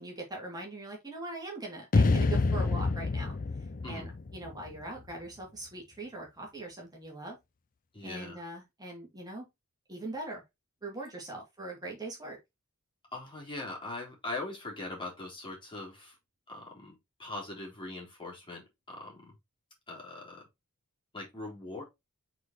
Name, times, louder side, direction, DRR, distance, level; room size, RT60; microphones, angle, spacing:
voice 1, 0.0-3.3 3.8-7.4 8.0-9.4 9.9-10.4 10.8-12.4, right 2 dB, 20° right, 2.7 m, -41 dB
sound 1, 1.9-5.1, left 3 dB, 40° left, 0.5 m, -28 dB
voice 2, 7.9-8.4 13.1-16.1 16.5-19.3 19.9-20.5 21.1-21.8, left 2 dB, 25° left, 3.6 m, -41 dB
8.1 x 4.8 x 3.0 m
head